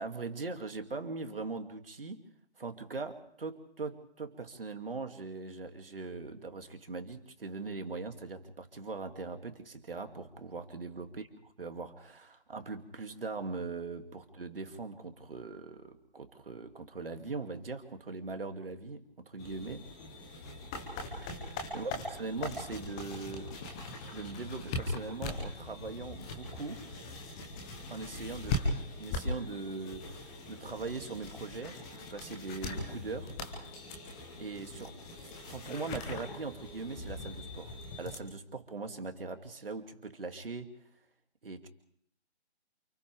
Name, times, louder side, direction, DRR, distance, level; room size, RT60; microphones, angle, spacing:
voice 1, 0.0-2.3 2.6-19.9 21.2-23.6 24.1-26.8 27.9-33.3 34.4-40.8 41.4-41.7, right 3 dB, 55° right, 6 dB, 2.6 m, -41 dB
sound 1, 19.4-38.2, left 2 dB, 5° left, 0.8 m, -40 dB
29.5 x 28.5 x 3.5 m, 0.64 s
figure-of-eight pair, 150°, 34 cm